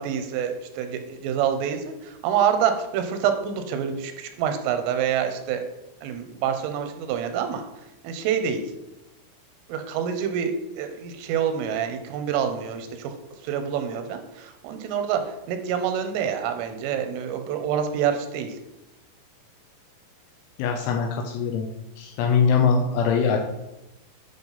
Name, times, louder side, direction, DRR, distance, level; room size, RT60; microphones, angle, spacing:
voice 1, 0.0-5.6 6.0-7.7 8.0-8.7 9.7-18.6, right 8 dB, 85° right, 7 dB, 3.3 m, -27 dB
voice 2, 20.6-21.7 22.0-23.4, left 6 dB, 80° left, 2 dB, 3.1 m, -22 dB
8.9 x 5.6 x 4.0 m, 0.94 s
omnidirectional pair, 5.7 m